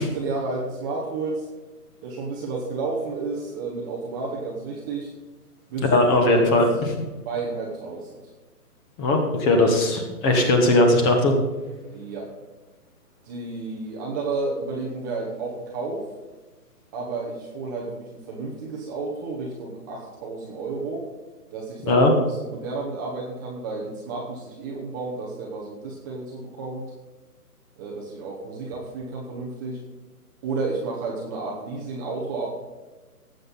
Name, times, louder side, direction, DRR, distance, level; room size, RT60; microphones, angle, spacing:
voice 1, 0.0-1.5 2.0-5.1 5.7-6.5 7.3-8.2 11.9-12.3 13.2-16.1 16.9-21.1 21.5-26.8 27.8-29.8 30.4-32.5, right 3 dB, 15° right, -2 dB, 0.9 m, -31 dB
voice 2, 5.9-6.6 9.0-11.3 21.9-22.1, left 2 dB, 15° left, 4 dB, 1.2 m, -18 dB
17.5 x 7.7 x 4.1 m, 1.2 s
hypercardioid pair, 150°, 46 cm